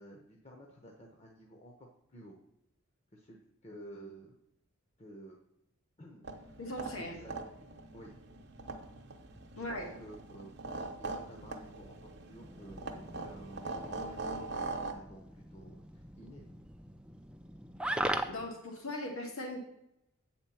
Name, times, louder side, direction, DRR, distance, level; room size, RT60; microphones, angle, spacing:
voice 1, 0.0-2.4 3.1-4.3 5.0-5.4 6.0-6.6 7.0-7.4 7.9-8.1 9.5-10.6 11.0-16.5, right 1 dB, 30° left, 1 dB, 0.9 m, -52 dB
sound 1, 6.2-14.9, right 3 dB, 50° right, 0.9 m, -42 dB
voice 2, 6.6-7.2 9.6-10.0 18.3-19.6, left 1 dB, 80° left, 2 dB, 1.9 m, -39 dB
sound 2, 12.4-18.5, right 1 dB, 5° right, 0.4 m, -40 dB
8.2 x 4.4 x 7.0 m, 0.82 s
head